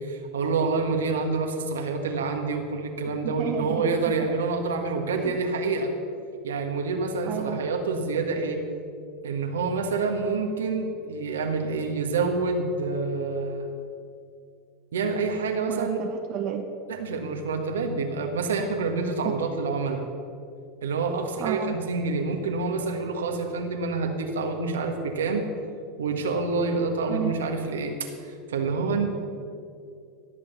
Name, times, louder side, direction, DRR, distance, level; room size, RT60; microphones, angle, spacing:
voice 1, 0.0-5.9 6.4-8.6 9.2-13.7 14.9-16.0 16.9-20.0 20.8-25.4 26.0-27.9 28.5-29.1, right 4 dB, 85° right, 4 dB, 1.6 m, -27 dB
voice 2, 3.2-3.9 5.1-5.3 7.3-7.6 15.7-16.6 19.2-19.3 21.4-21.8 27.1-27.3, right 9 dB, 50° right, 5 dB, 0.9 m, -31 dB
16.5 x 7.0 x 7.1 m, 2.4 s
hypercardioid pair, 90°, 0 cm